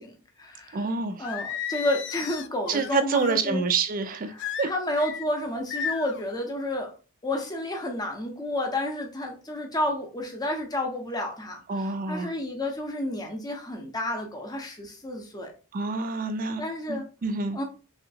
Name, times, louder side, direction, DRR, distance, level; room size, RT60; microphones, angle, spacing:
voice 1, 0.0-0.8 1.2-3.6 4.3-6.9 7.2-15.5 16.6-17.0 17.5-17.6, left 1 dB, 20° left, 0.7 m, -31 dB
voice 2, 0.7-1.3 2.7-4.7 11.7-12.3 15.7-16.6 16.9-17.6, right 4 dB, 40° right, 0.4 m, -27 dB
Singing, 1.2-3.4 4.4-5.2 5.7-6.2, left 7 dB, 55° left, 0.3 m, -34 dB
3.2 x 2.8 x 2.6 m
head